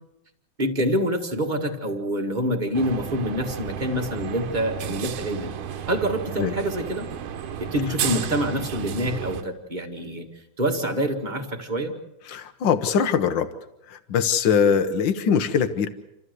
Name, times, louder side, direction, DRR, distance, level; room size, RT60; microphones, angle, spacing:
voice 1, 0.6-5.5 5.9-7.1 7.7-10.3 10.6-11.9, equal, 20° right, 4 dB, 1.1 m, -26 dB
sound 1, 2.7-9.4, right 8 dB, 85° right, 2.7 m, -32 dB
voice 2, 12.2-13.5 13.9-15.9, left 7 dB, 80° left, 9 dB, 1.0 m, -22 dB
28.0 x 14.0 x 8.0 m, 0.86 s
omnidirectional pair, 3.6 m